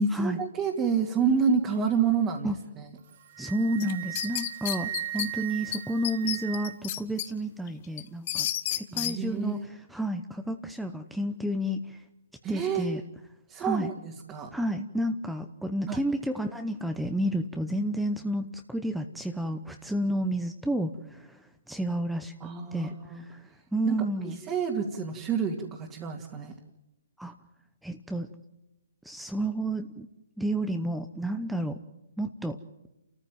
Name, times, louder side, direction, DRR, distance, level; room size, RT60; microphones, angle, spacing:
voice 1, 0.0-2.9 8.9-9.6 12.4-12.9 13.5-14.5 15.9-16.0 22.4-23.2 23.8-26.5, right 6 dB, 20° right, -1 dB, 2.3 m, -29 dB
Wind instrument woodwind instrument, 3.0-6.9, right 12 dB, 50° right, 1.7 m, -38 dB
voice 2, 3.4-12.0 12.5-13.0 13.6-13.9 14.5-22.3 22.7-24.4 27.2-27.3 27.8-28.3 29.0-30.1 30.4-31.8 32.2-32.6, right 1 dB, ahead, 6 dB, 0.9 m, -31 dB
sound 1, 3.8-5.3 5.7-5.8 6.0-7.3 7.7-9.1, left 12 dB, 40° left, 1.2 m, -31 dB
29.0 x 14.5 x 9.1 m, 0.95 s
hypercardioid pair, 145°, 0 cm